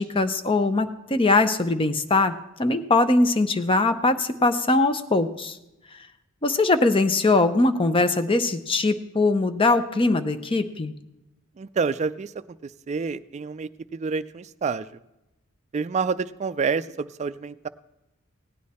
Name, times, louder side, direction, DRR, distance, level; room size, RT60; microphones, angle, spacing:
voice 1, 0.0-2.3 2.6-5.6 6.4-10.9, left 2 dB, 25° left, 10 dB, 0.6 m, -21 dB
voice 2, 11.6-12.3 12.6-14.9 15.7-17.7, right 5 dB, 35° right, 13 dB, 0.3 m, -28 dB
16.5 x 9.4 x 4.2 m, 0.95 s
head